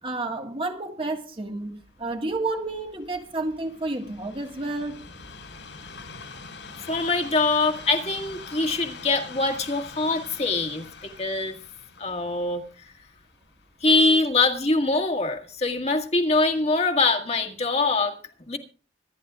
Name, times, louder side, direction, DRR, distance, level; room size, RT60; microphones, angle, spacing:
voice 1, 0.0-5.1, right 2 dB, 30° right, 1.7 m, -30 dB
Train, 1.7-14.9 15.6-15.7, left 4 dB, 85° left, 5.0 m, -45 dB
voice 2, 6.9-11.6 12.0-12.6 13.8-18.2 18.5-18.6, left 3 dB, 35° left, 1.8 m, -23 dB
26.0 x 10.5 x 2.4 m
head